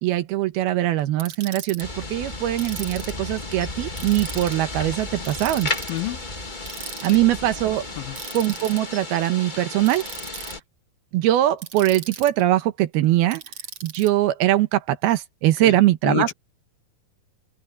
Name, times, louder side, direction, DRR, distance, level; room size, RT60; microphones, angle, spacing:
voice 1, 0.0-5.7 7.0-7.8 8.3-10.0 11.1-13.4 13.8-16.3, right 14 dB, 85° right, 3.0 m, -21 dB
Ratchet pawl, 1.2-1.8 2.6-3.3 4.0-4.6 5.3-6.0 6.7-7.2 8.2-8.8 9.8-10.5 11.6-12.4 13.3-14.1, right 7 dB, 45° right, 2.8 m, -37 dB
sound 1, 1.8-10.6, left 2 dB, 30° left, 0.8 m, -34 dB
voice 2, 5.9-6.2 6.8-7.2 8.0-8.2 15.6-15.8 16.0-16.3, left 14 dB, 75° left, 2.9 m, -29 dB
open air
omnidirectional pair, 4.4 m